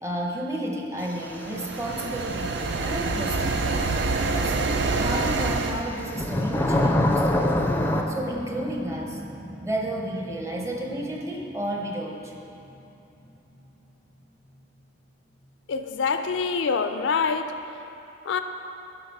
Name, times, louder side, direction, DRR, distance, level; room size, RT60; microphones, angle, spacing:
voice 1, 0.0-3.7 4.2-7.7 8.1-9.2 9.6-12.3, right 1 dB, 15° right, 0 dB, 0.8 m, -32 dB
sound 1, 1.2-5.8, right 3 dB, 65° right, 0.5 m, -26 dB
sound 2, 3.3-3.4 5.5-8.0, left 1 dB, 10° left, 0.4 m, -23 dB
sound 3, 3.8-16.5 17.0-17.1, equal, 45° right, 1.8 m, -44 dB
voice 2, 15.7-17.6 18.3-18.4, left 5 dB, 75° left, 8 dB, 0.4 m, -25 dB
7.9 x 5.5 x 5.3 m, 2.8 s
head